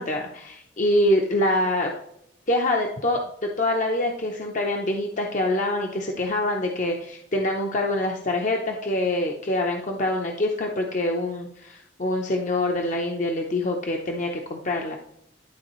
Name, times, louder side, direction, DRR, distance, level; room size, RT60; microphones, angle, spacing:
voice 1, 0.0-1.9 2.5-3.2 3.6-15.0, left 1 dB, 40° left, 1 dB, 0.7 m, -25 dB
11.5 x 4.0 x 3.0 m, 0.74 s
head